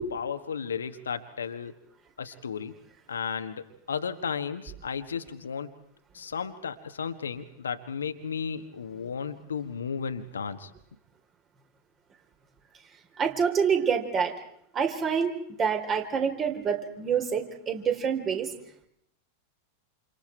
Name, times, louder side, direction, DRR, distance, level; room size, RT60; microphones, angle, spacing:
voice 1, 0.1-1.8 2.2-2.7 3.1-5.8 6.1-10.7, left 6 dB, 70° left, 8 dB, 1.6 m, -34 dB
voice 2, 13.2-14.3 14.7-18.5, right 6 dB, 25° right, 5 dB, 3.7 m, -27 dB
28.5 x 28.5 x 4.5 m, 0.74 s
figure-of-eight pair, 90°, 0 cm